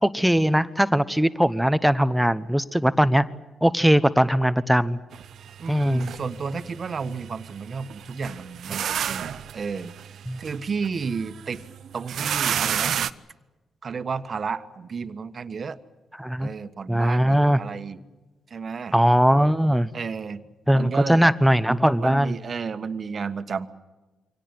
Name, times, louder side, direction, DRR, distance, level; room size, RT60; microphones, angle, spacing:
voice 1, 0.0-3.3 3.6-5.0 5.7-6.1 10.3-10.4 16.2-16.5 16.9-17.6 18.9-19.9 20.7-22.3, equal, 5° right, 14 dB, 0.9 m, -20 dB
sound 1, 5.1-13.1, right 9 dB, 75° right, 0.7 m, -32 dB
voice 2, 5.6-11.6 11.9-13.0 13.8-15.8 16.4-18.0 18.5-19.0 19.9-20.4 20.7-21.3 22.0-23.7, right 5 dB, 50° right, 11 dB, 1.4 m, -32 dB
24.5 x 18.0 x 9.7 m, 1.2 s
cardioid pair, 75°, 0 cm